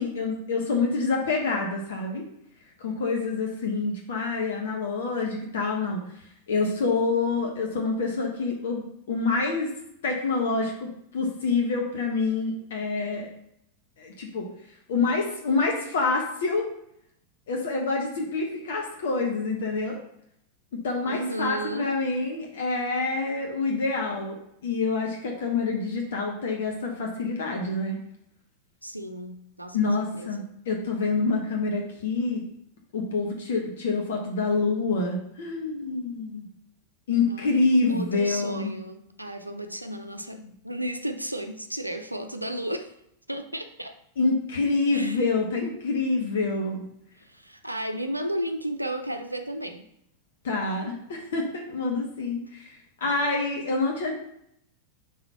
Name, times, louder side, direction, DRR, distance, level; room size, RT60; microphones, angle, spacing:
voice 1, 0.0-2.3 2.8-6.0 6.5-9.7 10.0-13.3 14.0-14.5 14.9-16.7 17.5-20.0 20.7-28.0 29.7-32.4 32.9-36.4 37.1-38.7 44.2-46.8 50.4-54.1, left 3 dB, 60° left, 0 dB, 1.1 m, -27 dB
voice 2, 21.1-21.9 28.8-29.8 30.1-30.5 36.2-36.4 37.3-37.6 37.9-42.9 43.3-43.9 44.9-45.3 47.2-49.9, right 1 dB, 85° right, 7 dB, 0.5 m, -33 dB
5.3 x 3.9 x 5.5 m, 0.75 s
figure-of-eight pair, 90°, 0 cm